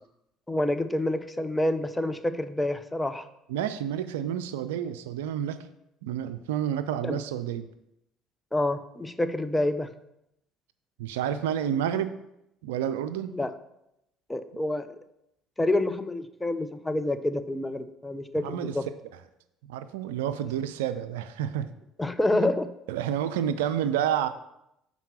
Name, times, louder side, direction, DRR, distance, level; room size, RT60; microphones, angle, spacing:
voice 1, 0.5-3.3 7.0-7.2 8.5-9.9 13.3-13.5 14.3-14.9 15.6-18.8 22.0-22.7, left 1 dB, 10° left, 10 dB, 0.6 m, -27 dB
voice 2, 3.5-5.6 6.0-7.7 11.0-12.1 12.6-13.3 18.4-18.8 19.7-21.7 22.4-22.5 22.9-24.3, right 10 dB, 80° right, 12 dB, 0.4 m, -29 dB
5.8 x 4.0 x 5.9 m, 0.82 s
hypercardioid pair, 60°, 0 cm